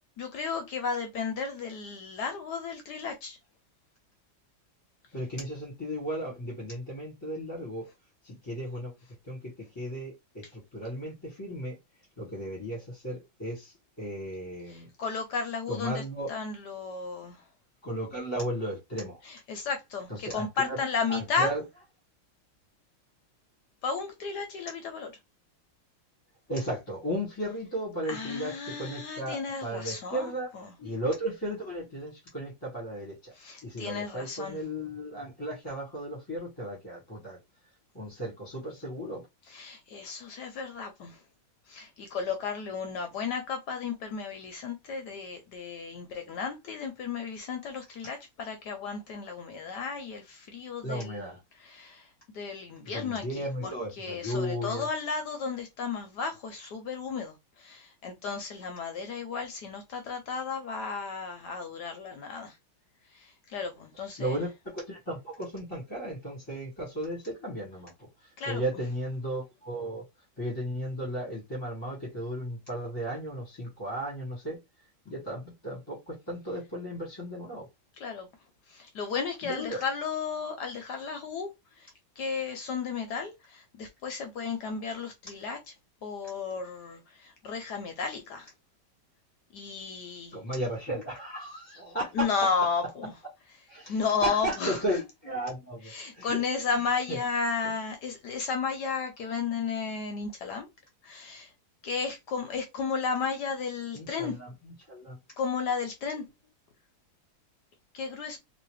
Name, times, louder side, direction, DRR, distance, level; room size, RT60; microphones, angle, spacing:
voice 1, 0.2-3.4 14.7-16.0 16.3-17.4 19.3-21.5 23.8-25.1 28.1-30.3 33.4-34.6 39.5-41.2 41.7-51.3 51.6-52.0 52.3-53.7 54.0-62.5 63.5-64.3 68.4-68.6 78.0-78.3 78.7-81.5 82.2-85.6 86.0-88.5 89.5-90.4 92.1-93.1 93.9-94.8 95.9-100.7 101.0-101.5 101.8-104.3 105.4-106.2 107.9-108.4, left 5 dB, 70° left, 1.0 m, -33 dB
voice 2, 5.1-7.8 8.2-8.9 9.2-11.8 12.2-14.9 15.7-16.3 17.8-19.2 20.1-20.8 21.1-21.6 26.5-30.5 30.8-33.3 33.6-37.4 37.9-39.2 50.8-51.4 52.8-54.9 63.9-70.0 70.4-74.6 75.0-77.7 79.4-79.8 90.3-92.3 93.7-96.4 97.1-97.2 103.9-105.2, right 1 dB, 15° left, 1.2 m, -35 dB
3.0 x 3.0 x 3.1 m
omnidirectional pair, 2.2 m